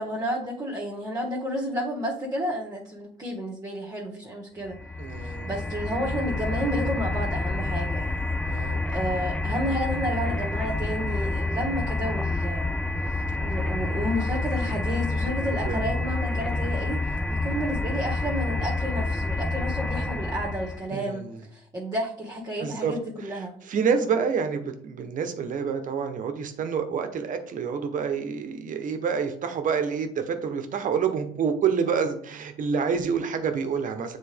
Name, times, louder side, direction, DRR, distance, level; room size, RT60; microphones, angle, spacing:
voice 1, 0.0-4.8 5.2-12.8 13.1-23.5, equal, 20° right, -5 dB, 1.6 m, -31 dB
sound 1, 4.7-20.9, left 2 dB, 5° left, 0.3 m, -28 dB
voice 2, 5.0-5.6 8.4-8.8 15.7-15.8 20.9-21.4 22.6-22.9 23.7-34.2, right 6 dB, 50° right, 7 dB, 1.0 m, -28 dB
7.7 x 3.9 x 3.5 m, 0.63 s
cardioid pair, 110°, 17 cm